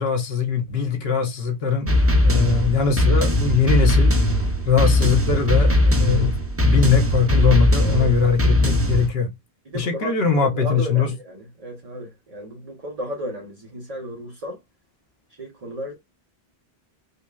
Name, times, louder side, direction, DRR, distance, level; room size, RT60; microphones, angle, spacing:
voice 1, 0.0-1.9 2.2-4.1 4.7-9.3 9.7-11.1, left 6 dB, 70° left, 1.2 m, -21 dB
sound 1, 1.9-9.1, left 1 dB, 15° right, 0.5 m, -19 dB
voice 2, 7.8-8.2 9.6-14.6 15.4-15.9, equal, 40° right, 0.8 m, -34 dB
5.6 x 2.1 x 2.2 m
omnidirectional pair, 1.1 m